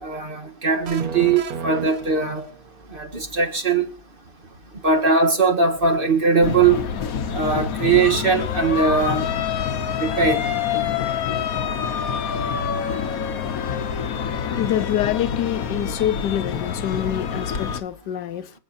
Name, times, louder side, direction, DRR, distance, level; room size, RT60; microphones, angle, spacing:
voice 1, 0.0-2.4 2.9-3.9 4.8-6.8 7.3-9.2 10.0-10.4, right 4 dB, 30° right, 1.7 m, -20 dB
sound 1, 0.8-2.8, right 6 dB, 60° right, 1.4 m, -33 dB
sound 2, 6.4-17.8, left 7 dB, 60° left, 1.4 m, -26 dB
voice 2, 14.5-18.5, left 11 dB, 80° left, 1.3 m, -26 dB
26.0 x 8.8 x 2.6 m
omnidirectional pair, 1.8 m